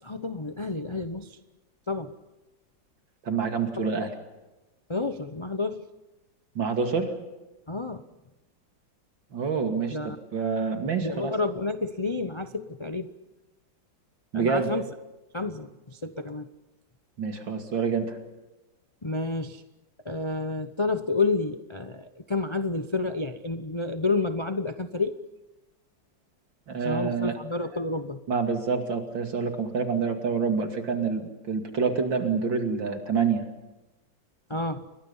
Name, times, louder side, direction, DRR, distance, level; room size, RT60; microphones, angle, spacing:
voice 1, 0.0-1.4 1.9-2.1 3.8-3.9 4.9-5.8 7.7-8.0 9.9-10.2 11.0-13.1 14.3-14.9 15.3-16.5 19.0-19.6 20.0-25.2 26.8-28.2 34.5-34.9, left 3 dB, 40° left, 9 dB, 0.4 m, -30 dB
voice 2, 3.2-4.1 6.5-7.1 9.3-10.0 10.3-11.3 14.3-14.7 17.2-18.2 26.7-27.4 28.3-33.4, right 5 dB, 75° right, 5 dB, 3.3 m, -27 dB
29.5 x 22.5 x 5.6 m, 1.1 s
omnidirectional pair, 2.1 m